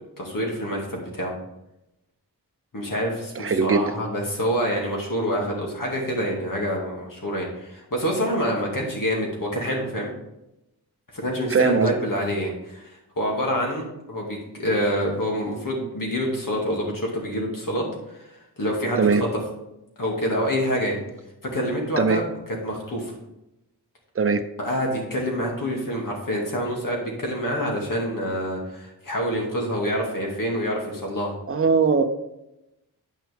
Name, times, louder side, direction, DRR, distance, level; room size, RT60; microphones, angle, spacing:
voice 1, 0.2-1.3 2.7-10.1 11.1-19.3 20.0-21.0 21.5-22.2 22.6-23.2 24.6-31.3, equal, 55° left, -1 dB, 2.4 m, -27 dB
voice 2, 3.4-3.8 11.5-11.9 19.0-19.2 22.0-22.2 24.2-24.4 31.5-32.0, right 5 dB, 35° right, 7 dB, 0.7 m, -20 dB
8.8 x 5.9 x 3.5 m, 0.89 s
wide cardioid pair, 65°, 39 cm